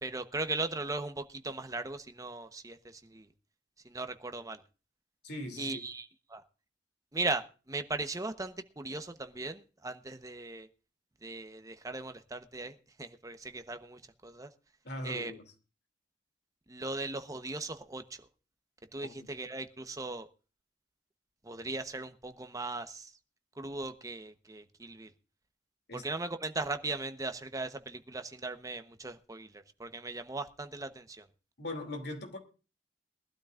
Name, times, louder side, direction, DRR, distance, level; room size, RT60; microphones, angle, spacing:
voice 1, 0.0-3.3 3.8-4.6 5.6-6.4 7.1-10.7 11.2-14.5 15.0-15.3 16.7-18.2 18.9-20.3 21.4-23.1 23.6-25.1 25.9-31.3, right 3 dB, 20° right, 1.0 m, -38 dB
voice 2, 5.2-5.8 14.8-15.4 19.0-19.3 25.9-26.0 31.6-32.4, left 1 dB, 65° left, 2.8 m, -40 dB
22.0 x 12.5 x 2.5 m
head